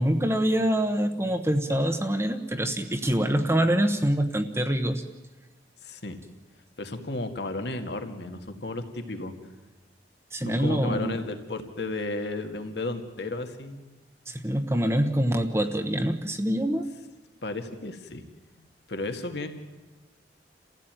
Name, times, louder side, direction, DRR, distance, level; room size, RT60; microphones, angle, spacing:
voice 1, 0.0-5.0 10.3-11.2 14.3-16.8, right 1 dB, 15° right, 6 dB, 1.1 m, -25 dB
voice 2, 5.8-6.2 6.8-9.3 10.4-13.9 17.4-18.2 18.6-19.5, left 2 dB, 65° left, 6 dB, 2.1 m, -33 dB
28.5 x 15.5 x 9.1 m, 1.2 s
head